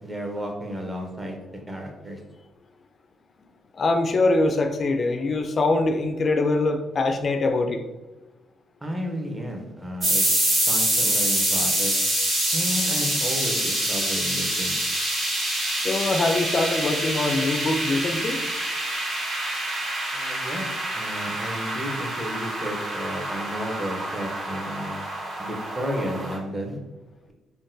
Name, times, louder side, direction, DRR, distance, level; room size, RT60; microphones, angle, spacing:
voice 1, 0.0-1.4 1.7-2.2 8.8-10.2 10.7-12.0 12.5-14.7 20.1-25.1 25.4-26.8, equal, 15° right, 2 dB, 0.7 m, -32 dB
voice 2, 3.7-7.8 15.8-18.4, left 2 dB, 45° left, 6 dB, 0.4 m, -23 dB
sound 1, 10.0-26.4, right 1 dB, 40° right, 1.4 m, -26 dB
3.7 x 2.2 x 2.6 m, 1.1 s
cardioid pair, 90°, 0 cm